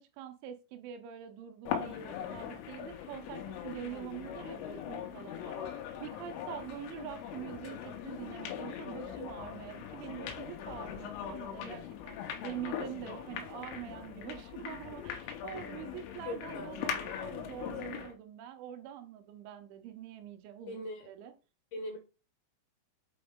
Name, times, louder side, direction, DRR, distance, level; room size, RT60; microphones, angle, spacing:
voice 1, 0.0-5.6 6.0-21.3, right 10 dB, 80° right, 2.9 m, -45 dB
sound 1, 1.7-18.2, left 9 dB, 90° left, 3.5 m, -41 dB
voice 2, 16.3-17.1 20.7-21.1 21.7-22.0, left 2 dB, 75° left, 2.3 m, -41 dB
7.8 x 4.2 x 3.6 m
omnidirectional pair, 5.6 m